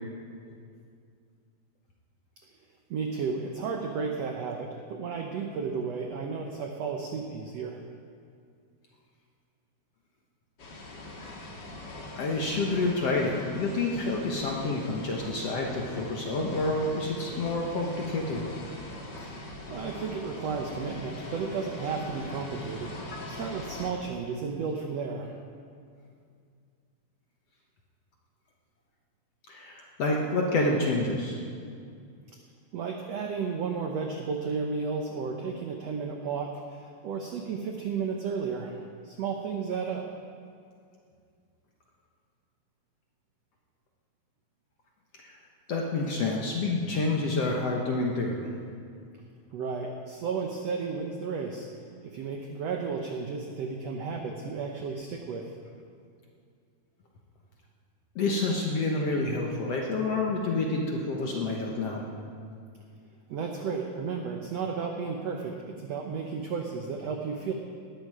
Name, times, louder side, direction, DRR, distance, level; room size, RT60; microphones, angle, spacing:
voice 1, 2.9-7.8 19.7-25.3 32.3-32.4 32.7-38.8 39.0-40.1 49.5-51.7 52.0-55.5 63.3-67.5, right 5 dB, 75° right, 3 dB, 1.5 m, -33 dB
sound 1, 10.6-23.9, left 1 dB, 40° left, 1.8 m, -42 dB
voice 2, 12.2-18.5 29.5-31.4 45.2-45.3 45.7-48.5 58.2-62.0, left 2 dB, 60° left, -1 dB, 1.7 m, -28 dB
18.5 x 13.0 x 4.9 m, 2.3 s
omnidirectional pair, 4.2 m